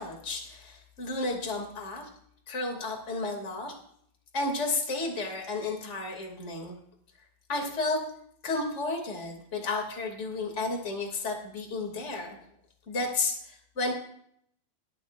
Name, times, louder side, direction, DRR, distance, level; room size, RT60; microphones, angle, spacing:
voice 1, 0.0-2.1 2.5-3.7 4.3-6.8 7.5-8.0 8.4-12.4 12.9-13.9, left 3 dB, 20° left, 1 dB, 1.9 m, -32 dB
20.0 x 12.5 x 2.6 m, 0.67 s
omnidirectional pair, 5.4 m